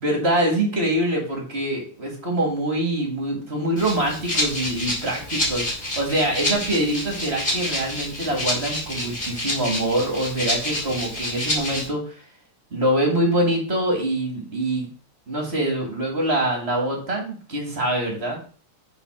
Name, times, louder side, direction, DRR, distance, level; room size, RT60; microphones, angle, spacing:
voice 1, 0.0-12.2 12.7-14.9 15.3-18.4, right 1 dB, 30° right, 1 dB, 1.8 m, -24 dB
Rattle (instrument), 3.8-11.9, left 1 dB, 25° left, 2.4 m, -28 dB
5.6 x 4.7 x 5.8 m, 0.41 s
omnidirectional pair, 2.4 m